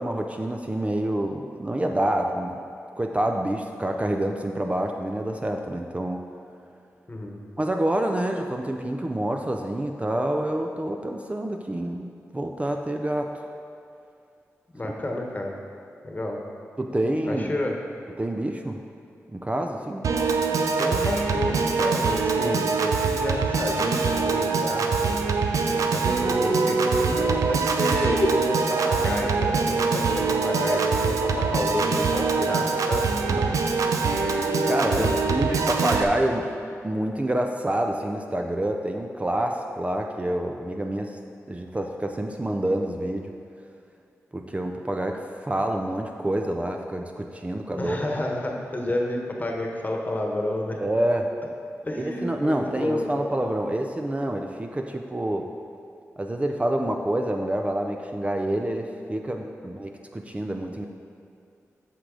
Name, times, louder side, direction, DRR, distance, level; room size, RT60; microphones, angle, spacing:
voice 1, 0.0-2.6 3.0-6.2 7.6-13.3 16.8-17.5 18.2-18.8 19.3-20.1 22.4-22.5 33.3-33.4 34.7-36.5 36.8-41.2 41.5-43.3 44.3-48.0 50.8-51.3 52.0-55.5 56.2-60.9, right 1 dB, 25° right, 3 dB, 0.5 m, -27 dB
voice 2, 7.1-7.4 14.7-15.5 16.0-16.4 17.3-17.7 20.8-25.4 25.7-28.3 28.7-33.0 34.8-35.1 35.4-35.6 47.8-50.8 51.8-53.1, left 1 dB, 30° left, 1 dB, 1.2 m, -30 dB
Piano / Organ, 20.0-36.0, right 4 dB, 80° right, 0.5 m, -23 dB
8.1 x 6.1 x 3.8 m, 2.5 s
cardioid pair, 45°, 6 cm